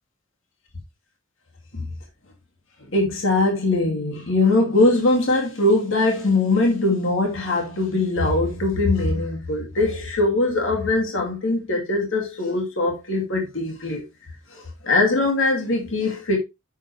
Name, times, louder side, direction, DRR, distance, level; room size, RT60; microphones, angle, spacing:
voice 1, 2.9-14.0 14.5-16.4, left 2 dB, 70° left, 2.5 m, -21 dB
8.2 x 6.1 x 3.2 m
head